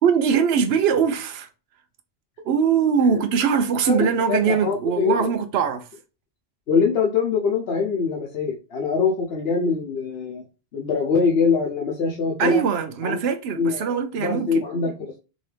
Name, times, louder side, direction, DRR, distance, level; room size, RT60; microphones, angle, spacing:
voice 1, 0.0-1.5 2.4-5.9 12.4-14.7, right 7 dB, 75° right, 0.9 m, -21 dB
voice 2, 3.8-5.3 6.7-10.4 10.7-12.6 13.0-13.2 13.6-15.2, left 5 dB, 75° left, 1.0 m, -23 dB
5.1 x 2.7 x 3.3 m
omnidirectional pair, 1.1 m